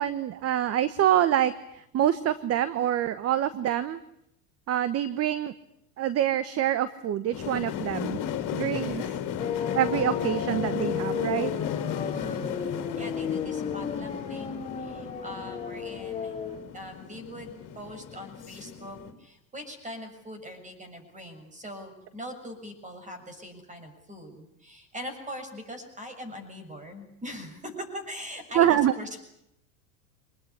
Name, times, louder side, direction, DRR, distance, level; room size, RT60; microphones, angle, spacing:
voice 1, 0.0-4.0 4.7-5.5 6.0-8.2 8.5-9.0 9.7-11.5 28.5-28.9, right 11 dB, 30° right, 14 dB, 1.1 m, -26 dB
sound 1, 7.3-19.1, left 8 dB, 40° left, 4.3 m, -35 dB
sound 2, 9.4-16.6, left 7 dB, 15° left, 4.0 m, -34 dB
voice 2, 12.1-16.4 16.7-29.2, equal, 15° right, 8 dB, 7.0 m, -42 dB
25.0 x 20.5 x 9.9 m, 0.79 s
hypercardioid pair, 110°, 47 cm